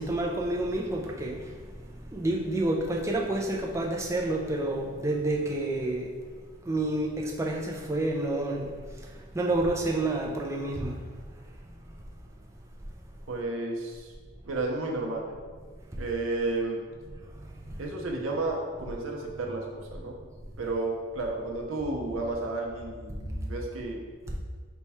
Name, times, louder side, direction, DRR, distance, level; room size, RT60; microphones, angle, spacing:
voice 1, 0.0-6.1 6.6-11.0 15.9-16.0 17.1-17.9 24.3-24.4, right 2 dB, 15° right, -1 dB, 0.4 m, -30 dB
voice 2, 13.3-14.1 14.5-15.4 16.0-16.8 17.8-20.2 20.6-24.0, right 2 dB, 75° right, 0 dB, 0.7 m, -32 dB
4.4 x 2.3 x 4.2 m, 1.6 s
head